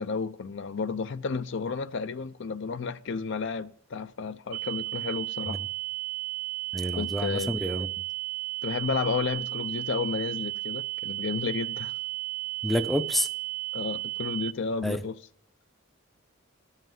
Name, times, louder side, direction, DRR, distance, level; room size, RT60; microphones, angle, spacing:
voice 1, 0.0-5.6 6.9-7.5 8.6-11.9 13.7-15.1, left 5 dB, 60° left, 0.5 m, -32 dB
sound 1, 4.5-14.5, right 18 dB, 80° right, 0.4 m, -34 dB
voice 2, 6.7-7.9 12.6-13.3 14.8-15.0, equal, ahead, 0.5 m, -28 dB
14.0 x 5.7 x 7.5 m
head